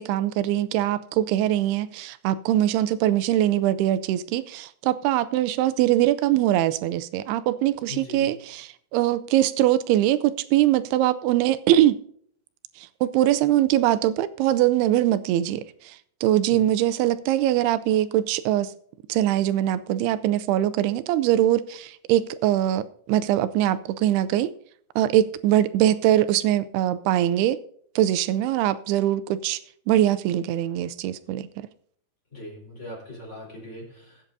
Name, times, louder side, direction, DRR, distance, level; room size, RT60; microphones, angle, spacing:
voice 1, 0.0-12.0 12.8-16.0 16.2-18.7 19.1-24.5 25.0-27.6 28.0-29.6 29.9-31.5, right 13 dB, 90° right, 13 dB, 2.6 m, -22 dB
voice 2, 7.9-8.3 16.5-16.7 32.3-34.2, left 2 dB, 20° left, -3 dB, 4.2 m, -40 dB
21.5 x 8.4 x 2.7 m, 0.63 s
omnidirectional pair, 4.5 m